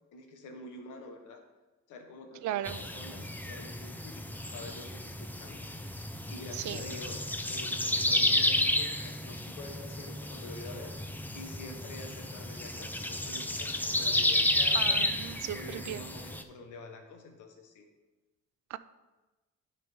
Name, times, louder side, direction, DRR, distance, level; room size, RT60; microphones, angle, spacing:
voice 1, 0.1-1.4 1.9-5.9 6.3-15.1 15.5-17.9, left 2 dB, 90° left, 4 dB, 1.2 m, -47 dB
voice 2, 2.4-2.8 6.5-6.8 14.7-16.0 18.7-18.8, right 13 dB, 70° right, 15 dB, 0.5 m, -36 dB
sound 1, 2.6-16.4, left 1 dB, 5° left, 0.5 m, -32 dB
9.2 x 5.8 x 3.6 m, 1.2 s
cardioid pair, 90°, 30 cm